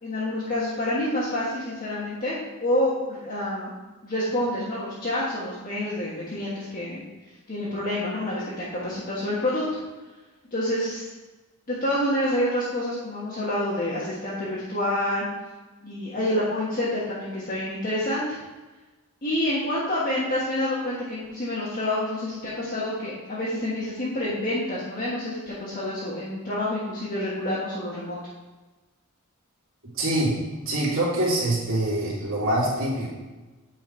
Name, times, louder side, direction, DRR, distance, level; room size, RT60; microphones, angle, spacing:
voice 1, 0.0-3.7 4.0-7.1 7.5-9.6 10.5-11.1 11.7-15.2 15.8-18.4 19.2-28.2, left 1 dB, 40° left, -8 dB, 1.5 m, -28 dB
voice 2, 29.9-30.4 30.6-33.1, right 1 dB, 60° right, -7 dB, 2.8 m, -24 dB
8.8 x 4.6 x 4.5 m, 1.2 s
head